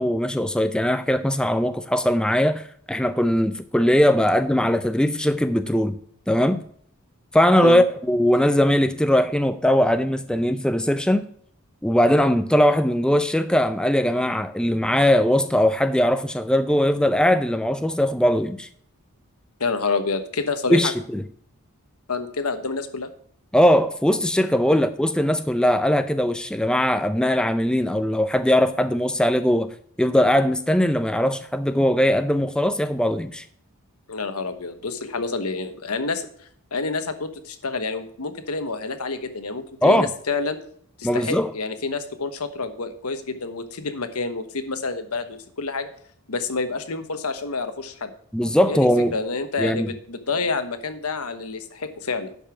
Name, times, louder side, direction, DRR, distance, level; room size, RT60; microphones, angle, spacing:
voice 1, 0.0-6.0 6.3-6.6 7.3-11.3 11.8-18.7 20.7-21.2 23.5-29.7 30.0-33.4 39.8-40.1 41.0-41.5 48.3-49.1 49.6-49.9, equal, 5° left, 0.5 m, -20 dB
voice 2, 19.6-20.9 22.1-23.1 24.7-24.8 34.1-36.3 36.7-40.6 41.0-45.9 46.3-48.1 48.7-52.3, left 4 dB, 90° left, 1.2 m, -28 dB
11.0 x 5.5 x 6.0 m
head